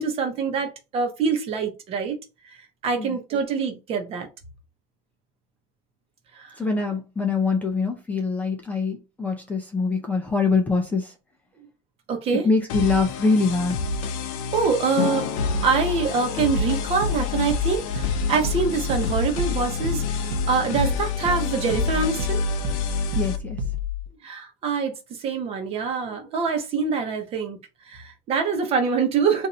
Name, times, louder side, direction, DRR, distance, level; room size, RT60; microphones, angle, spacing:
voice 1, 0.0-2.2 2.4-2.6 2.8-4.3 6.3-6.6 12.1-12.5 14.5-15.3 15.6-22.4 24.2-27.6 27.9-29.5, right 5 dB, 35° right, 0.9 m, -25 dB
voice 2, 6.6-11.1 12.4-13.8 23.2-23.6, left 4 dB, 10° left, 0.5 m, -24 dB
sound 1, 12.7-23.4, left 2 dB, 85° left, 0.6 m, -29 dB
sound 2, 15.0-22.3, left 8 dB, 55° left, 0.6 m, -36 dB
sound 3, 16.6-24.1, left 4 dB, 75° right, 0.7 m, -29 dB
2.6 x 2.6 x 4.2 m
cardioid pair, 150°, 17 cm